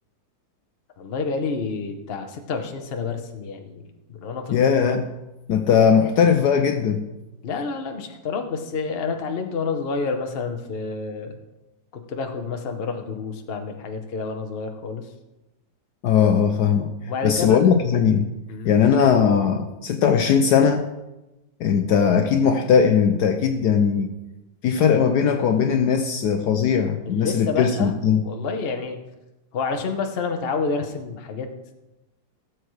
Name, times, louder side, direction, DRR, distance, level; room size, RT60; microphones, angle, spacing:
voice 1, 1.0-3.8 4.1-4.6 7.4-11.4 11.9-15.1 17.1-17.6 18.5-18.8 27.0-27.9 28.2-29.0 29.5-31.5, left 4 dB, 40° left, 5 dB, 0.9 m, -29 dB
voice 2, 4.5-5.1 5.5-7.1 16.0-16.9 17.2-18.3 18.6-20.9 21.6-24.1 24.6-28.2, left 7 dB, 70° left, 6 dB, 1.1 m, -19 dB
16.5 x 7.7 x 3.2 m, 0.99 s
omnidirectional pair, 2.1 m